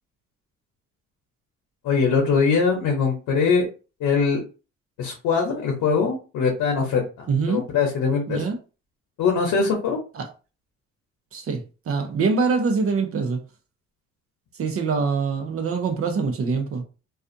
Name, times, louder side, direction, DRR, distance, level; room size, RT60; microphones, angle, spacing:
voice 1, 1.8-3.7 4.0-4.4 5.0-8.4 9.2-10.0, left 5 dB, 80° left, 0.8 m, -22 dB
voice 2, 7.3-7.6 8.3-8.6 10.1-10.3 11.3-13.4 14.6-16.8, right 4 dB, 50° right, 0.7 m, -24 dB
2.4 x 2.3 x 2.5 m
cardioid pair, 90°, 30 cm